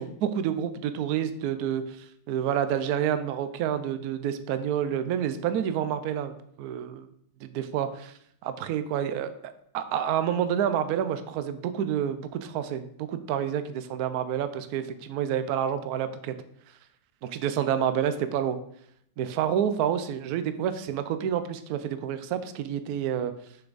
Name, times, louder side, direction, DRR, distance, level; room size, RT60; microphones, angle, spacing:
voice 1, 0.0-7.1 7.5-8.1 8.4-16.3 17.2-18.6 19.2-23.3, right 9 dB, 90° right, 10 dB, 0.8 m, -29 dB
6.8 x 5.9 x 4.0 m, 0.69 s
omnidirectional pair, 2.3 m